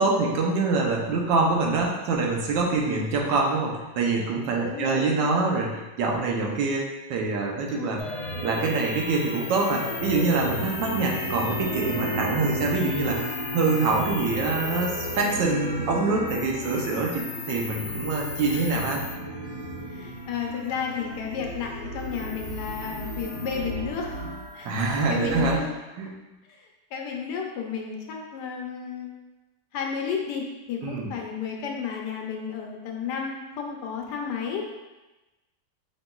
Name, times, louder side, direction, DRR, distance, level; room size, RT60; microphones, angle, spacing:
voice 1, 0.0-5.7 6.0-8.0 8.4-19.0 24.6-25.6 26.0-26.1 30.8-31.1, right 3 dB, 85° right, 0 dB, 1.3 m, -25 dB
voice 2, 4.6-5.4 7.7-8.0 18.5-18.6 19.9-24.2 24.5-24.7 25.1-25.7 26.5-29.1 29.7-34.6, left 6 dB, 75° left, 1 dB, 1.2 m, -32 dB
sound 1, 8.0-25.6, left 1 dB, 40° left, 1.1 m, -33 dB
5.2 x 2.9 x 2.2 m, 1.1 s
omnidirectional pair, 1.9 m